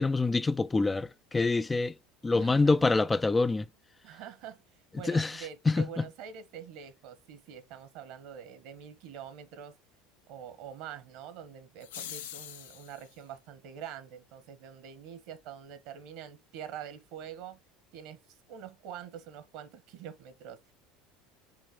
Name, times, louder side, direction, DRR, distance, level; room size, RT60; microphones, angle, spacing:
voice 1, 0.0-1.9 2.2-3.7 5.1-5.4 5.7-5.8, left 3 dB, 15° left, 0.4 m, -26 dB
voice 2, 2.3-3.0 4.0-4.6 4.9-9.7 10.3-17.6 17.9-20.7, right 8 dB, 65° right, 1.4 m, -45 dB
sound 1, 11.8-13.1, left 11 dB, 85° left, 0.6 m, -43 dB
5.6 x 4.3 x 5.1 m
hypercardioid pair, 90°, 0 cm